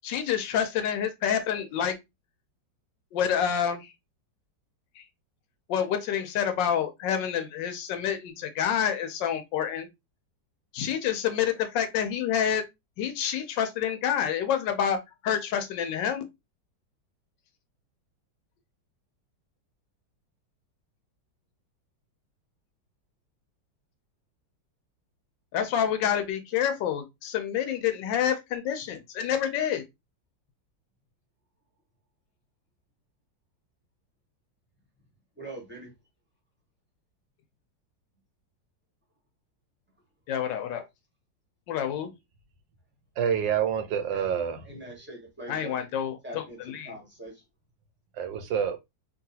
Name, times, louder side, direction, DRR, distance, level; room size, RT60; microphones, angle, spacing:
voice 1, 0.0-2.0 3.1-3.9 5.0-5.1 5.7-9.9 10.7-12.6 13.0-16.3 25.5-29.8 40.3-40.8 41.7-42.1 45.5-47.0, left 9 dB, 80° left, 1.3 m, -28 dB
voice 2, 35.4-35.9 44.1-44.3 44.6-45.8 46.2-47.4, right 1 dB, 10° right, 0.8 m, -42 dB
voice 3, 43.2-44.6 48.2-48.8, right 8 dB, 85° right, 1.4 m, -27 dB
3.8 x 2.3 x 2.7 m
omnidirectional pair, 2.0 m